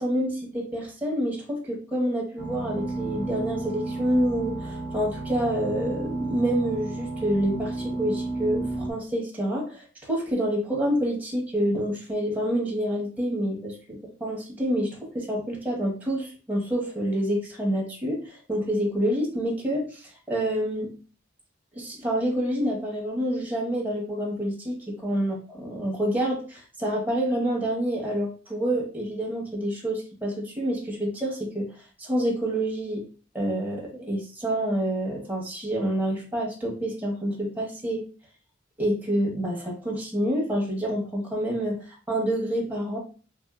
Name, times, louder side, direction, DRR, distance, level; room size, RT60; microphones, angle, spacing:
voice 1, 0.0-20.9 21.7-31.6 32.0-33.0 33.3-38.0 38.8-43.0, right 1 dB, 10° right, -3 dB, 1.0 m, -28 dB
sound 1, 2.4-8.9, right 2 dB, 25° right, 0.5 m, -32 dB
3.5 x 2.6 x 2.3 m, 0.37 s
head